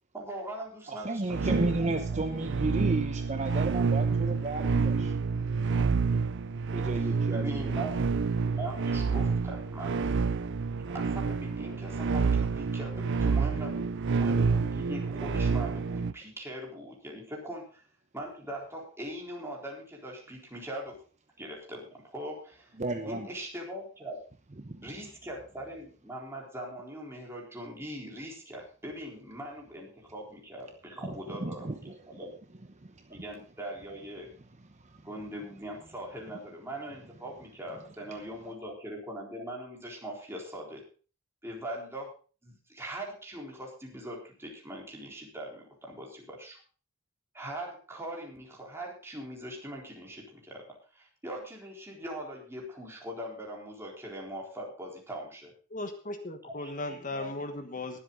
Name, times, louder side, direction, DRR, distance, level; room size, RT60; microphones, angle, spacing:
voice 1, 0.1-2.2 7.0-8.0 8.4-10.2 10.9-17.8 18.1-21.0 21.4-22.7 23.0-24.2 24.8-32.3 33.1-34.3 35.0-40.8 41.4-42.1 42.4-46.6 47.3-55.5 56.5-56.6, right 1 dB, 10° right, -2 dB, 4.0 m, -41 dB
voice 2, 0.9-5.1 6.7-7.7 22.8-23.3 24.6-24.9 31.0-31.1 31.4-32.2 32.8-33.2 34.8-35.0, right 2 dB, 35° right, 7 dB, 0.9 m, -33 dB
sound 1, 1.3-16.1, right 5 dB, 60° right, 0.5 m, -28 dB
voice 3, 55.7-58.0, left 2 dB, 40° left, 7 dB, 1.4 m, -37 dB
20.5 x 7.9 x 3.9 m, 0.38 s
head